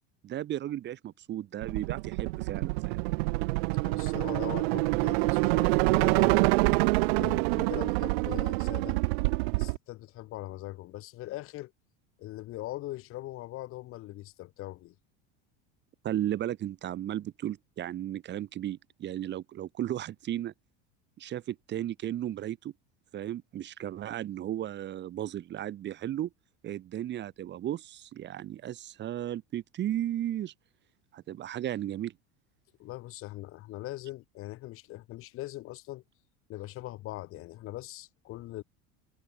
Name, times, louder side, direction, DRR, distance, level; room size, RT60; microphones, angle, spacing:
voice 1, 0.2-3.0 16.0-20.5 21.2-22.7 23.1-26.3 26.6-30.5 31.1-32.1, right 12 dB, 35° right, 1.8 m, -35 dB
sound 1, 1.6-9.8, right 27 dB, 85° right, 0.7 m, -26 dB
voice 2, 3.8-6.5 7.2-9.0 9.5-11.7 12.2-14.9 32.8-36.0 36.5-38.6, left 16 dB, 45° left, 1.4 m, -41 dB
supercardioid pair, 135°, 30 cm